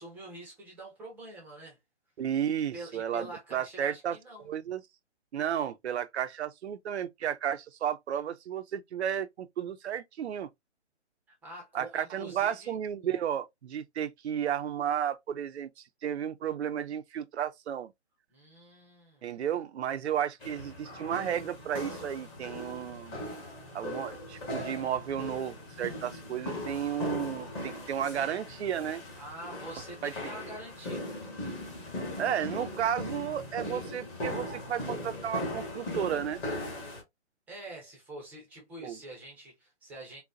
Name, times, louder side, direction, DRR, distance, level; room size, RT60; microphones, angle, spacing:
voice 1, 0.0-1.8 2.7-4.5 11.3-12.7 18.3-19.3 29.2-31.1 37.5-40.2, right 1 dB, 5° right, 0.7 m, -45 dB
voice 2, 2.2-4.2 4.4-4.8 5.3-10.5 11.7-17.9 19.2-23.2 23.7-29.0 30.0-30.1 32.2-36.4 38.8-39.0, right 9 dB, 65° right, 0.6 m, -33 dB
sound 1, 20.4-37.0, left 1 dB, 15° left, 1.1 m, -39 dB
4.0 x 2.1 x 2.4 m
hypercardioid pair, 145°, 35 cm